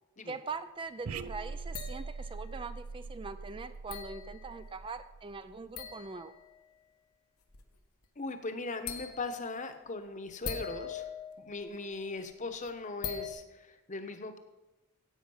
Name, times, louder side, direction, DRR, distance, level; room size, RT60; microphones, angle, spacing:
voice 1, 0.2-6.3, right 4 dB, 25° right, 11 dB, 0.4 m, -42 dB
sound 1, 1.1-5.7, right 4 dB, 85° right, 0.5 m, -43 dB
sound 2, 1.7-2.7 3.9-4.7 5.8-6.6 7.5-7.7 8.0-8.1 8.9-9.5 10.3-12.3 12.6-12.7 13.0-13.3, left 7 dB, 85° left, 1.3 m, -42 dB
voice 2, 8.2-11.1 11.4-14.4, left 3 dB, 35° left, 8 dB, 1.0 m, -39 dB
15.5 x 8.4 x 5.6 m, 1.1 s
head